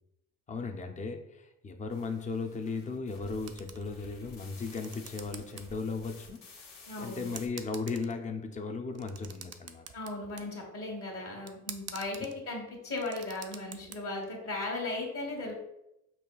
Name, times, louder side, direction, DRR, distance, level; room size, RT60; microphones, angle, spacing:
voice 1, 0.5-6.4 7.0-9.8, left 4 dB, 25° left, 5 dB, 0.5 m, -36 dB
sound 1, 1.9-7.5, left 3 dB, 65° left, 0.9 m, -53 dB
sound 2, 3.5-4.2 4.5-5.6 6.0-6.1 6.9-7.0 7.3-8.3 8.9-10.5 11.5-12.3 12.8-13.9, right 8 dB, 55° right, 0.4 m, -46 dB
voice 2, 6.9-7.3 9.9-15.5, left 2 dB, 50° left, 0 dB, 1.2 m, -37 dB
5.6 x 2.3 x 2.3 m, 0.87 s
cardioid pair, 90°, 30 cm